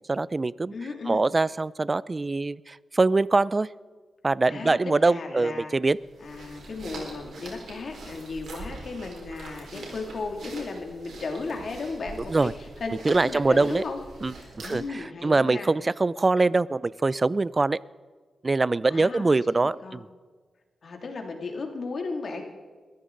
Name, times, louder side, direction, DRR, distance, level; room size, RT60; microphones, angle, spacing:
voice 1, 0.1-0.7 1.0-3.7 4.2-6.0 12.3-12.5 13.0-13.8 14.2-17.8 18.4-20.1, right 3 dB, 35° right, 21 dB, 0.4 m, -23 dB
voice 2, 0.7-1.2 4.5-5.7 6.2-12.5 12.8-14.0 14.3-15.7 18.9-19.2 19.5-20.0 20.8-22.4, left 3 dB, 65° left, 3 dB, 2.4 m, -35 dB
sound 1, 6.0-15.0, right 2 dB, 90° right, 4.4 m, -43 dB
22.0 x 14.0 x 3.8 m, 1.5 s
cardioid pair, 75°, 0 cm